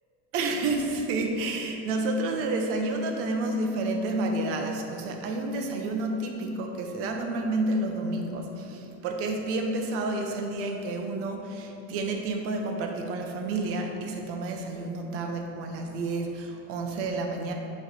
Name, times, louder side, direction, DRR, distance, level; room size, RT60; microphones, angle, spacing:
voice 1, 0.3-17.5, right 2 dB, 40° right, 3 dB, 0.7 m, -30 dB
8.8 x 3.3 x 4.1 m, 2.8 s
supercardioid pair, 155°, 35 cm